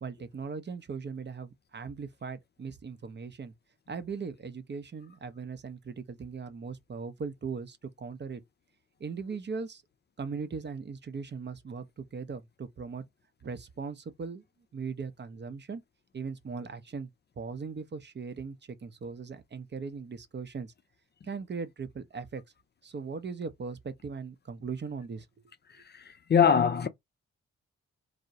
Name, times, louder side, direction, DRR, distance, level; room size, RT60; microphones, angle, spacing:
voice 1, 0.0-3.5 3.9-8.4 9.0-9.8 10.2-13.0 13.4-14.4 14.7-15.8 16.1-17.1 17.4-20.7 21.2-22.4 22.8-25.3, right 5 dB, 35° right, 0.7 m, -39 dB
voice 2, 26.3-26.9, left 7 dB, 35° left, 0.4 m, -21 dB
2.2 x 2.1 x 2.7 m
hypercardioid pair, 40°, 30 cm